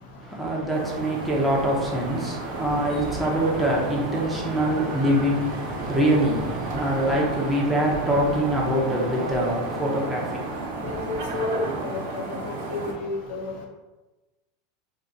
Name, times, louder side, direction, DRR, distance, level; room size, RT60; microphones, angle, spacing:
voice 1, 0.2-11.4, right 1 dB, ahead, 0.7 m, -25 dB
sound 1, 0.7-12.9, right 3 dB, 80° right, 0.7 m, -32 dB
voice 2, 10.8-12.0 12.7-13.5, left 2 dB, 65° left, 0.8 m, -30 dB
2.5 x 2.5 x 3.9 m
supercardioid pair, 140°, 0 cm